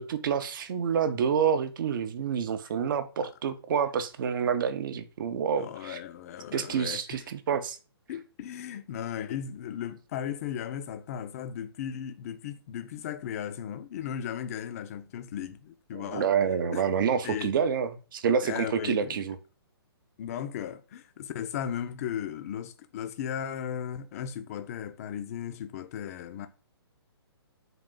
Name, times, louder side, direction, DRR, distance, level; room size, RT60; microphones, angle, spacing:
voice 1, 0.0-6.0 6.5-7.8 15.9-19.4, right 7 dB, 50° right, 0.5 m, -28 dB
voice 2, 5.6-7.0 8.1-16.3 16.7-16.8 17.2-17.6 18.4-19.2 20.2-26.5, left 9 dB, 35° left, 0.4 m, -36 dB
3.8 x 2.4 x 3.7 m
hypercardioid pair, 150°, 14 cm